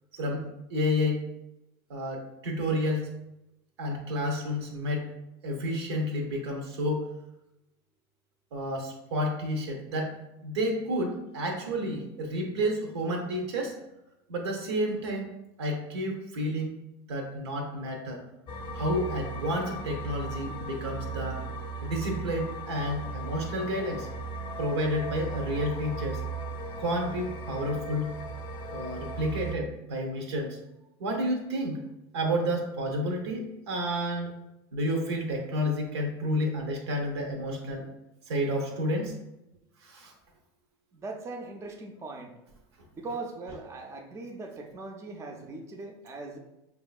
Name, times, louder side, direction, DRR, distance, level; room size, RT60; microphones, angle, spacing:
voice 1, 0.1-0.4 0.7-1.2 1.9-3.1 3.8-5.1 5.4-7.1 8.5-10.1 10.4-13.7 14.3-15.3 15.6-16.7 17.1-18.2 18.7-21.4 21.8-24.1 24.6-26.2 26.8-28.1 28.7-30.6 31.0-31.8 32.1-34.3 34.7-37.9 38.3-39.1 39.8-40.1, equal, 90° right, 1 dB, 1.0 m, -30 dB
sound 1, 18.5-29.6, right 3 dB, 40° left, 0.5 m, -37 dB
voice 2, 40.9-42.3 42.9-46.4, right 3 dB, 20° right, 2 dB, 0.5 m, -40 dB
5.0 x 2.9 x 2.3 m, 0.90 s
supercardioid pair, 115°, 13 cm